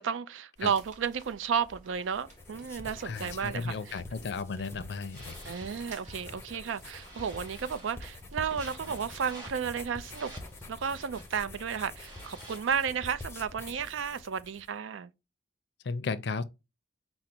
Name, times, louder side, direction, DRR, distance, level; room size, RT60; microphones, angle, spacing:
voice 1, 0.0-4.0 5.5-10.3 10.7-15.1, right 7 dB, 85° right, 0.4 m, -33 dB
sound 1, 0.6-8.6, right 2 dB, 40° right, 1.1 m, -56 dB
sound 2, 2.0-14.7, left 2 dB, 15° left, 0.6 m, -46 dB
voice 2, 3.0-5.4 15.8-16.4, left 4 dB, 60° left, 0.4 m, -34 dB
sound 3, 4.6-13.4, right 1 dB, 20° right, 1.9 m, -52 dB
4.9 x 2.0 x 4.3 m
head